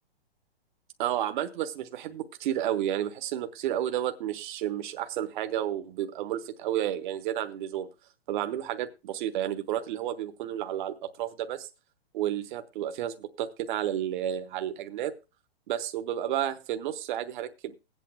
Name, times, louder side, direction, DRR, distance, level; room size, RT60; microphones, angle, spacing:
voice 1, 1.0-7.9 8.3-11.7 12.1-15.1 15.7-17.7, right 11 dB, 55° right, 9 dB, 1.0 m, -31 dB
20.5 x 8.4 x 2.2 m, 0.28 s
hypercardioid pair, 120°, 30 cm